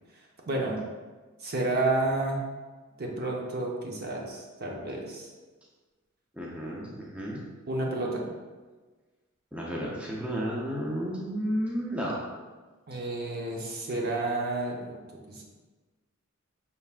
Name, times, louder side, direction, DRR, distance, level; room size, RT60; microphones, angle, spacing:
voice 1, 0.5-0.8 1.4-2.4 3.0-5.3 7.7-8.3 12.9-15.4, right 2 dB, 50° right, -1 dB, 0.7 m, -30 dB
voice 2, 6.4-7.4 9.5-12.1, equal, 5° right, -4 dB, 0.6 m, -32 dB
5.4 x 3.5 x 2.4 m, 1.3 s
head